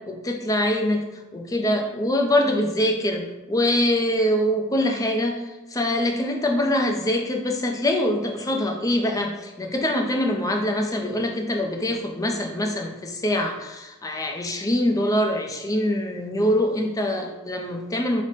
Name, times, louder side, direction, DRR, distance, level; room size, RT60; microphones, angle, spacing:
voice 1, 0.1-18.2, left 1 dB, 15° left, 3 dB, 0.4 m, -24 dB
5.0 x 2.1 x 4.0 m, 1.1 s
head